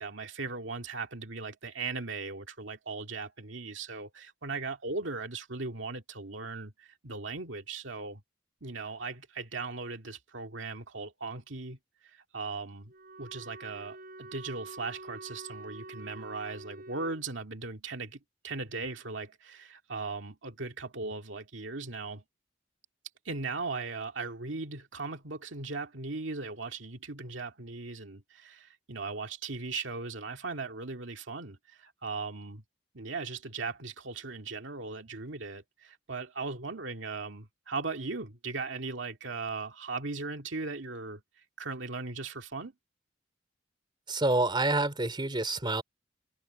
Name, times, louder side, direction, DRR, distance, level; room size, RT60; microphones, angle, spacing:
voice 1, 0.0-8.2 8.6-11.8 12.0-12.9 13.2-22.2 23.3-32.6 32.9-41.2 41.6-42.7, right 3 dB, 85° right, 2.1 m, -38 dB
Wind instrument woodwind instrument, 12.9-17.2, right 3 dB, 50° right, 7.6 m, -47 dB
voice 2, 44.1-45.8, right 2 dB, 25° right, 3.1 m, -27 dB
head